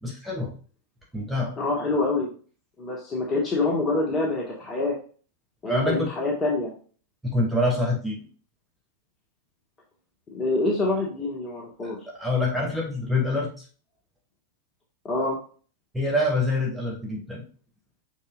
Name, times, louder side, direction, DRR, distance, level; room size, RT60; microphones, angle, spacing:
voice 1, 0.0-0.5 1.1-1.5 5.7-6.1 7.2-8.2 11.8-13.6 15.9-17.4, left 1 dB, ahead, -3 dB, 2.8 m, -26 dB
voice 2, 1.6-2.3 2.8-4.9 5.6-6.7 10.3-12.0 15.0-15.4, left 2 dB, 25° left, -2 dB, 1.7 m, -26 dB
6.5 x 6.2 x 2.5 m, 0.40 s
figure-of-eight pair, 90°, 0 cm